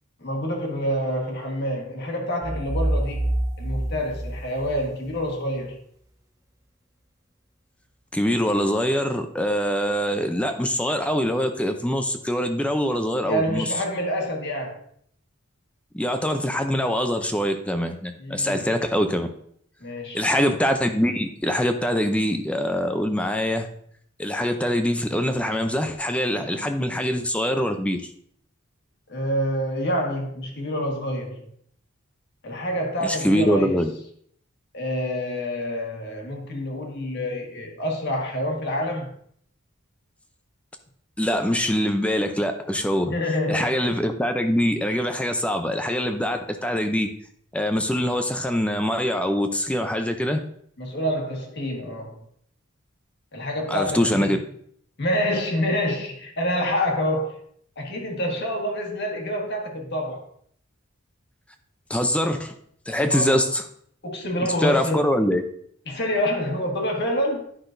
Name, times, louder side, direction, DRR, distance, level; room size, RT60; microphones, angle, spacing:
voice 1, 0.2-5.8 13.2-14.8 18.2-18.7 19.8-20.2 26.4-26.5 29.1-31.5 32.4-33.8 34.7-39.1 43.1-43.9 50.8-52.2 53.3-54.4 55.0-57.4 57.8-60.2 63.0-63.4 64.0-65.1 65.9-67.5, equal, 55° left, 1 dB, 1.5 m, -27 dB
sound 1, 2.4-5.2, right 1 dB, 15° right, 0.8 m, -27 dB
voice 2, 8.1-13.7 15.9-19.3 20.1-23.7 24.2-28.0 33.0-33.9 41.2-43.1 43.5-47.1 47.5-50.4 53.7-54.4 61.9-62.5 62.9-63.6 64.6-65.4, equal, 5° left, 6 dB, 0.5 m, -23 dB
10.0 x 5.8 x 2.6 m, 0.64 s
head